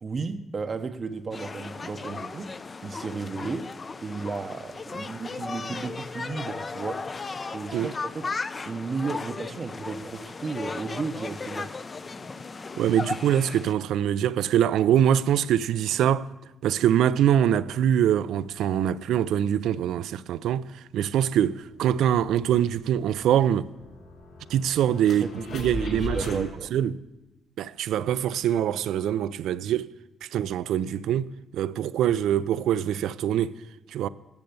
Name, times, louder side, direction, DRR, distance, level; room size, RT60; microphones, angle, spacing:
voice 1, 0.0-2.5 2.8-3.7 4.0-7.1 7.5-8.3 8.7-11.7 25.1-26.7, right 4 dB, 40° right, 0.6 m, -34 dB
sound 1, 1.3-13.7, left 4 dB, 30° left, 0.4 m, -36 dB
voice 2, 12.8-16.3 16.6-20.7 20.9-23.7 24.5-25.3 25.5-27.0 27.6-29.9 30.3-33.6 33.9-34.1, right 10 dB, 80° right, 0.3 m, -24 dB
sound 2, 21.0-21.1 21.4-26.4, left 2 dB, 60° left, 4.0 m, -39 dB
10.5 x 6.6 x 7.8 m
cardioid pair, 90°, 0 cm